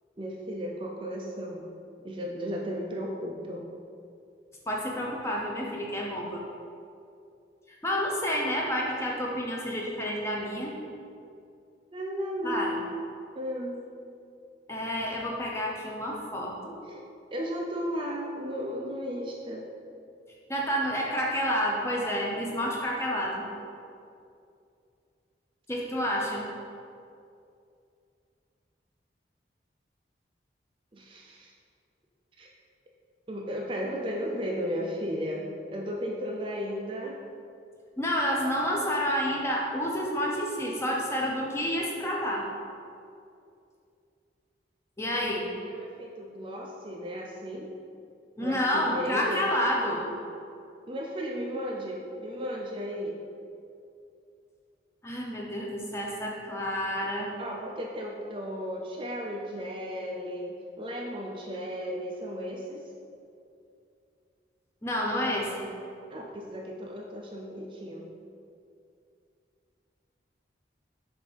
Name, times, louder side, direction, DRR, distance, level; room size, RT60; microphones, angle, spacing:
voice 1, 0.2-1.6 2.0-3.7 11.9-13.0 13.3-13.8 16.9-17.0 17.3-19.7 30.9-31.5 32.4-32.5 33.3-37.2 45.2-45.4 45.6-47.7 48.4-49.5 50.9-53.2 57.4-62.8 66.1-68.1, equal, 30° right, 0 dB, 0.4 m, -35 dB
voice 2, 4.7-6.4 7.8-10.7 12.4-12.8 14.7-16.8 20.5-23.5 25.7-26.5 38.0-42.5 45.0-45.5 48.4-50.0 55.0-57.3 64.8-65.7, equal, 15° left, -2 dB, 0.7 m, -29 dB
7.1 x 2.6 x 5.0 m, 2.5 s
head